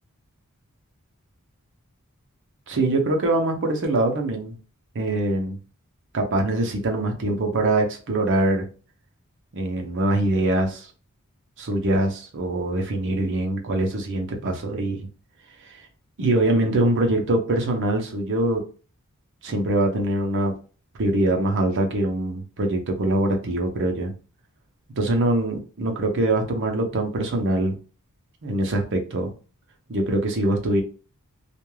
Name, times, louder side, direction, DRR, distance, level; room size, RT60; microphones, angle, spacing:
voice 1, 2.7-4.5 4.9-5.6 6.1-8.7 9.5-10.9 11.6-15.0 16.2-18.6 19.4-20.5 21.0-24.1 25.0-27.8 28.4-29.3 29.9-30.8, right 1 dB, 55° right, 3 dB, 0.7 m, -23 dB
2.4 x 2.3 x 3.1 m, 0.36 s
head